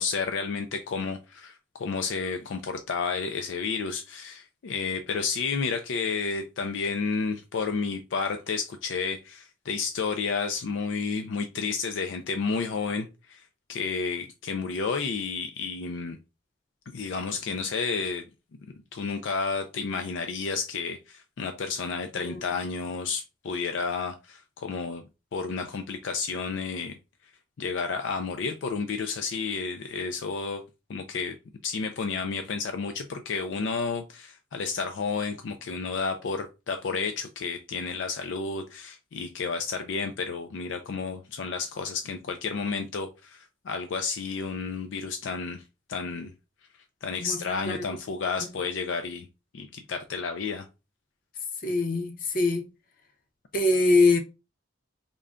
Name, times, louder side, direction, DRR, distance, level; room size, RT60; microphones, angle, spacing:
voice 1, 0.0-13.4 13.7-16.2 16.9-18.2 18.9-25.0 25.3-27.0 27.6-30.6 30.9-31.4 31.6-45.6 45.9-46.3 47.0-49.3 49.5-50.7, left 5 dB, 70° left, 0.4 m, -31 dB
voice 2, 51.6-52.7 53.5-54.2, left 2 dB, 45° left, 0.7 m, -23 dB
3.7 x 2.2 x 3.6 m
head